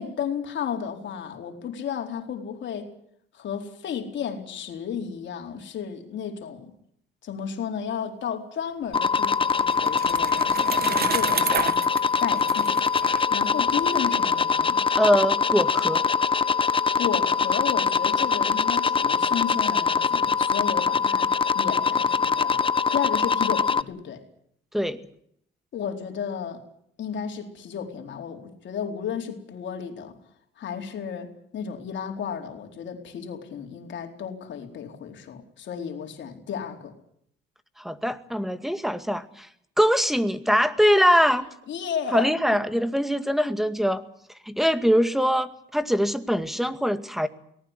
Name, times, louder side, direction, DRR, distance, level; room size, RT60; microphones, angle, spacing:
voice 1, 0.0-2.9 3.3-6.7 7.2-11.8 12.2-12.8 13.3-14.8 17.0-22.6 22.9-24.2 25.7-26.6 27.0-30.2 30.6-36.9 41.7-42.4, left 7 dB, 65° left, 4 dB, 4.4 m, -33 dB
sound 1, 8.9-23.8, left 5 dB, 25° left, 0.9 m, -23 dB
Bicycle, 8.9-14.0, right 7 dB, 50° right, 1.7 m, -32 dB
voice 2, 15.0-16.0 24.7-25.0 37.8-39.5 39.8-41.5 42.1-44.0 44.5-47.3, equal, ahead, 10 dB, 2.1 m, -22 dB
24.0 x 19.0 x 8.3 m, 0.70 s
cardioid pair, 90°, 20 cm